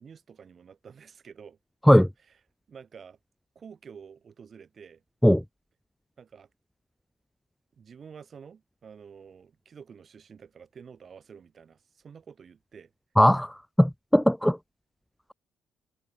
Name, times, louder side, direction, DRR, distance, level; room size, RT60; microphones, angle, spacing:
voice 1, 0.0-1.6 2.7-3.2 3.5-5.0 6.2-6.5 7.8-12.9, right 6 dB, 45° right, 6.3 m, -49 dB
voice 2, 13.2-14.6, equal, 5° left, 0.4 m, -19 dB
cardioid pair, 90°, 0 cm